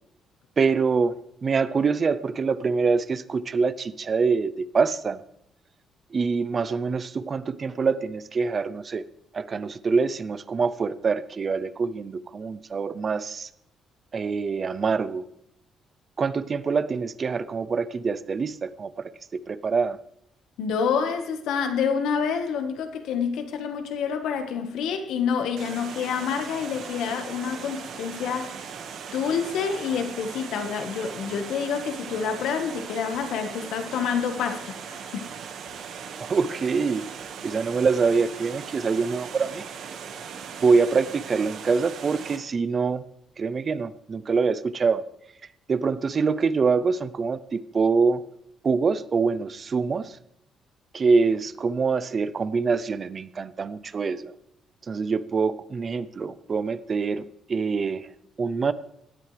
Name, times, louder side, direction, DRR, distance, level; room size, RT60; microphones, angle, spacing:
voice 1, 0.6-5.2 6.1-9.0 9.3-13.5 14.1-15.3 16.2-20.0 36.2-37.0 37.4-39.6 40.6-43.0 43.4-45.0 45.7-48.2 48.6-50.2 50.9-54.3 54.9-58.1 58.4-58.7, right 5 dB, 30° right, 0.6 m, -25 dB
voice 2, 20.6-28.7 29.1-35.3, left 6 dB, 85° left, 1.5 m, -28 dB
Water, 25.6-42.4, right 7 dB, 65° right, 1.6 m, -39 dB
18.0 x 13.0 x 3.4 m
cardioid pair, 160°, 0 cm